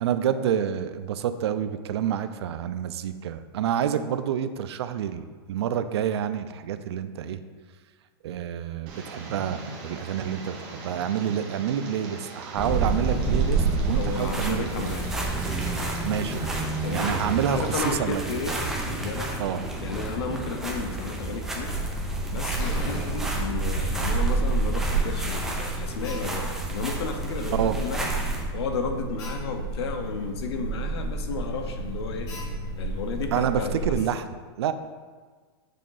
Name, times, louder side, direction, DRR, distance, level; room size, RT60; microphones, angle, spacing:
voice 1, 0.0-7.4 8.2-14.9 16.0-16.6 16.9-18.2 19.4-19.7 27.5-27.8 33.3-34.7, right 9 dB, 80° right, 11 dB, 0.5 m, -28 dB
Tick, 8.9-17.8, right 3 dB, 35° right, 1.2 m, -41 dB
sound 1, 12.6-28.4, right 3 dB, 5° right, 0.5 m, -29 dB
voice 2, 13.9-15.1 16.8-18.6 18.9-19.4 19.8-21.7 22.3-28.1 28.5-32.3 32.8-34.0, left 5 dB, 75° left, 6 dB, 0.8 m, -33 dB
Alarm, 21.6-34.0, right 2 dB, 25° left, 1.0 m, -31 dB
6.7 x 3.7 x 3.9 m, 1.5 s
supercardioid pair, 165°, 14 cm